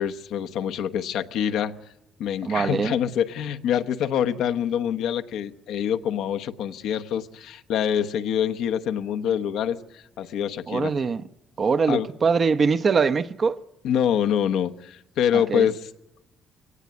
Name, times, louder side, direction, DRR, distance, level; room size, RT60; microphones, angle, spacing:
voice 1, 0.0-1.7 2.2-10.9 11.9-12.1 13.8-15.9, left 9 dB, 85° left, 1.0 m, -25 dB
voice 2, 2.4-3.0 10.7-11.2 11.6-13.6 15.3-15.7, right 5 dB, 45° right, 0.9 m, -22 dB
23.0 x 18.0 x 9.5 m
cardioid pair, 90°, 0 cm